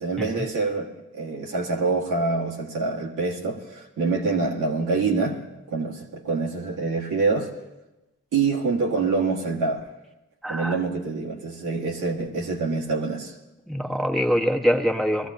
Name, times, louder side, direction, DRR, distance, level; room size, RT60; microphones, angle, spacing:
voice 1, 0.0-5.4 5.7-7.5 8.3-9.9 10.5-13.3, right 4 dB, 80° right, 1.8 m, -26 dB
voice 2, 10.4-10.8 13.7-15.3, equal, ahead, 1.5 m, -24 dB
20.5 x 14.0 x 2.8 m
supercardioid pair, 40°, 31 cm